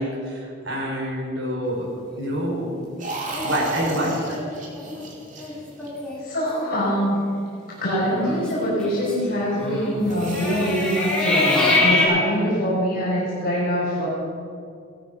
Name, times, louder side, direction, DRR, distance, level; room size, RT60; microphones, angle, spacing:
voice 1, 0.0-1.9 2.1-2.8 3.4-4.2, equal, 65° right, -3 dB, 5.5 m, -26 dB
sound 1, 3.0-6.2 10.0-11.8, right 2 dB, 40° right, 2.7 m, -34 dB
sound 2, 3.3-5.0 5.4-5.5 5.8-6.2 6.6-6.9 7.8-12.1, left 2 dB, 5° left, 4.2 m, -25 dB
voice 2, 6.2-7.2 7.8-14.1, equal, 50° left, -7 dB, 5.0 m, -24 dB
18.0 x 13.5 x 5.5 m, 2.3 s
head